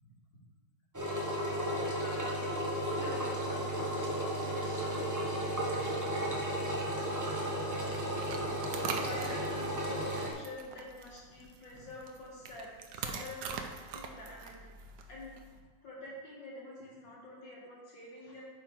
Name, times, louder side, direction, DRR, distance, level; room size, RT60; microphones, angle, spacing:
Engine, 0.9-10.3, equal, 15° right, 0.8 m, -34 dB
voice 1, 2.0-2.6 3.0-5.1 8.7-12.7 12.9-13.6 13.9-14.5 15.0-15.3 15.8-18.4, left 2 dB, 90° left, -6 dB, 3.2 m, -47 dB
sound 1, 7.7-15.6, right 5 dB, 90° right, 1.4 m, -44 dB
8.9 x 5.8 x 4.6 m, 1.4 s
omnidirectional pair, 1.9 m